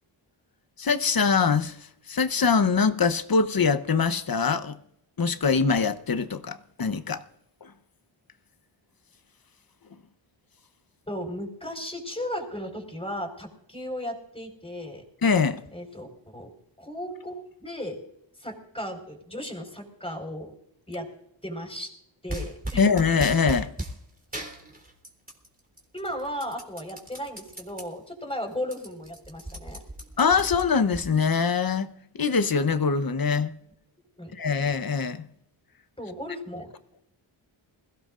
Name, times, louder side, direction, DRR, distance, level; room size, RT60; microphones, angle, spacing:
voice 1, 0.8-1.8 2.1-4.8 5.2-7.2 7.6-7.7 15.2-15.6 22.8-23.7 30.2-31.9 32.2-33.5 34.3-35.3, left 5 dB, 45° left, 1.0 m, -23 dB
voice 2, 11.1-15.0 15.7-16.5 16.8-18.0 18.4-20.5 20.9-21.1 21.4-21.9 22.2-22.9 25.9-29.8 34.2-34.3 36.0-36.7, equal, 10° left, 4.7 m, -35 dB
sound 1, 22.3-24.0 24.3-25.5 25.8-27.9 28.3-28.4 28.6-31.0, right 1 dB, 15° right, 3.4 m, -36 dB
21.0 x 16.0 x 2.5 m
cardioid pair, 50°, 49 cm